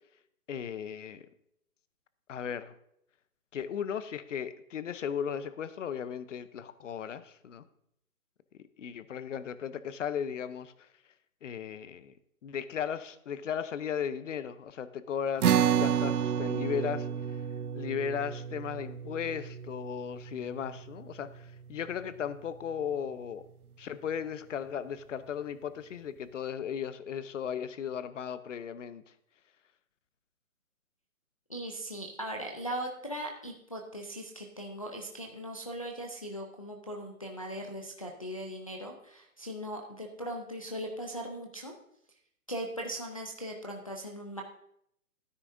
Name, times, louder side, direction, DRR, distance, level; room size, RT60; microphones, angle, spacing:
voice 1, 0.5-1.3 2.3-2.7 3.5-7.7 8.8-10.9 11.4-12.1 12.4-15.5 15.8-17.1 17.7-23.4 23.8-29.0, left 8 dB, 60° left, 14 dB, 0.7 m, -36 dB
sound 1, 15.4-22.0, right 9 dB, 90° right, 0.6 m, -31 dB
voice 2, 31.5-41.7 42.5-44.4, equal, 25° left, 0 dB, 0.4 m, -39 dB
12.0 x 9.8 x 2.6 m, 0.74 s
hypercardioid pair, 155°, 43 cm